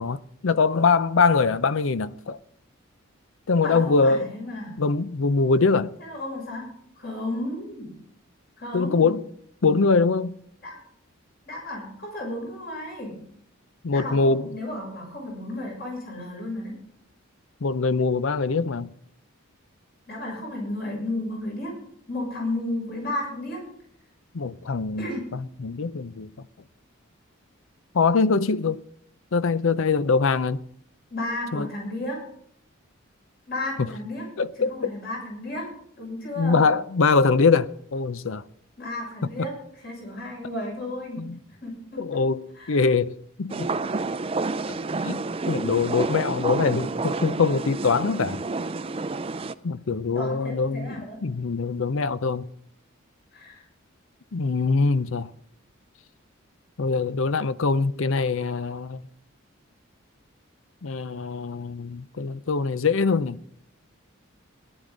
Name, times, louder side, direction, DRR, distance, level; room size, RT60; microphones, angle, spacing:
voice 1, 0.0-2.4 3.5-4.3 4.8-5.9 8.7-9.2 9.6-10.3 13.8-14.5 17.6-18.9 24.3-26.3 27.9-28.8 29.3-30.6 31.5-31.7 33.8-33.9 34.4-34.9 36.4-38.4 41.2-41.4 42.0-43.7 45.0-48.4 49.6-52.5 54.3-55.3 56.8-59.0 60.8-63.4, left 4 dB, 70° left, 0.6 m, -23 dB
voice 2, 3.6-4.8 6.0-6.7 7.0-7.9 8.6-9.1 10.6-10.8 11.4-13.1 13.9-16.7 20.1-21.7 22.1-23.6 25.0-25.3 31.1-32.2 33.5-34.3 34.6-36.6 38.8-39.6 39.8-41.2 41.6-42.0 42.6-42.8 50.1-51.2 53.3-53.6, left 1 dB, 50° left, 6.6 m, -33 dB
sound 1, 43.5-49.5, right 3 dB, 25° right, 0.4 m, -29 dB
18.0 x 12.0 x 3.9 m
head